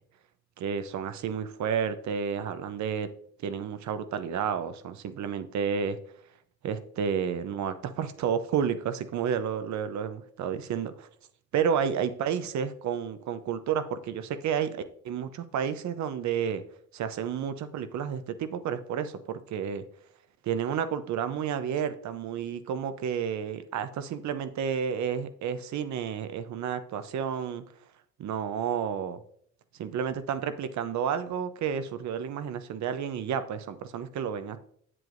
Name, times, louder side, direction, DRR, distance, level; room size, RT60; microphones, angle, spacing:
voice 1, 0.6-3.1 3.4-6.0 6.6-11.1 11.5-16.6 16.9-19.8 20.4-27.6 28.2-29.2 29.8-34.6, right 7 dB, 70° right, 11 dB, 0.7 m, -31 dB
7.8 x 7.7 x 2.5 m, 0.63 s
cardioid pair, 90°, 30 cm